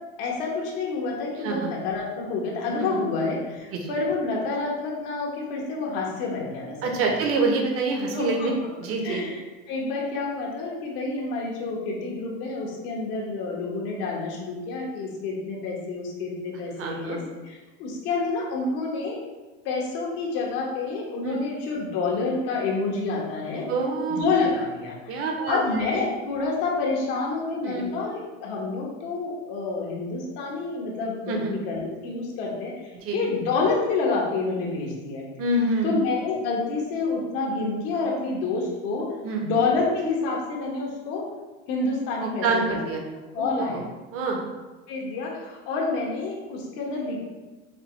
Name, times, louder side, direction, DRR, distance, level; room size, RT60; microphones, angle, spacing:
voice 1, 0.2-6.9 8.1-8.5 9.0-9.4 9.7-19.2 19.6-23.6 24.1-25.1 25.5-35.2 35.8-39.1 39.4-41.3 41.7-42.8 43.3-43.8 44.9-47.2, left 3 dB, 70° left, -2 dB, 1.2 m, -28 dB
voice 2, 6.8-8.5 8.8-9.2 16.8-17.2 21.2-21.4 23.7-24.2 25.1-25.6 25.9-26.1 27.6-27.9 31.3-31.5 33.0-33.2 35.4-36.0 39.2-39.4 42.2-43.0 43.4-43.8 44.1-44.4, right 3 dB, 45° right, 1 dB, 0.9 m, -26 dB
5.9 x 2.2 x 3.3 m, 1.2 s
supercardioid pair, 120°, 31 cm